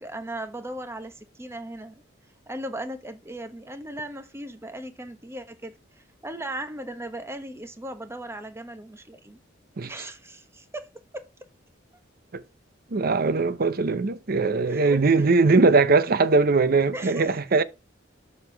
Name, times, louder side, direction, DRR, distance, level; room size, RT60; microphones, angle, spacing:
voice 1, 0.0-2.0 2.5-5.7 6.2-9.4 9.9-10.9 11.1-11.2 14.7-15.3 16.9-17.3, right 1 dB, 15° right, 0.9 m, -37 dB
voice 2, 12.9-17.6, right 3 dB, 50° right, 0.6 m, -20 dB
6.6 x 5.2 x 4.4 m
head